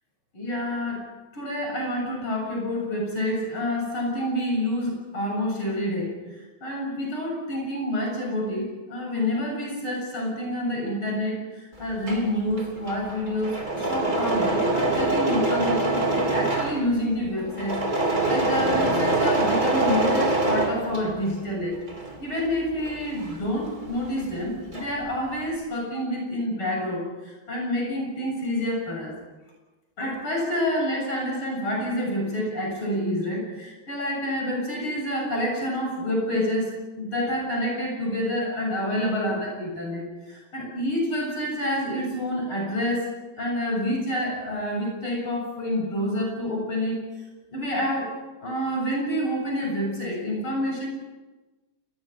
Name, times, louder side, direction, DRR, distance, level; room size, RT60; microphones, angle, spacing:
voice 1, 0.3-1.1 1.3-6.1 6.6-21.8 22.2-29.1 30.0-47.0 47.5-48.1 48.4-50.9, left 1 dB, 80° left, 0 dB, 8.0 m, -28 dB
Engine / Mechanisms, 11.8-21.4 21.8-24.1 24.4-25.1, right 2 dB, 20° right, 3.5 m, -25 dB
28.5 x 22.0 x 6.0 m, 1.2 s
omnidirectional pair, 2.4 m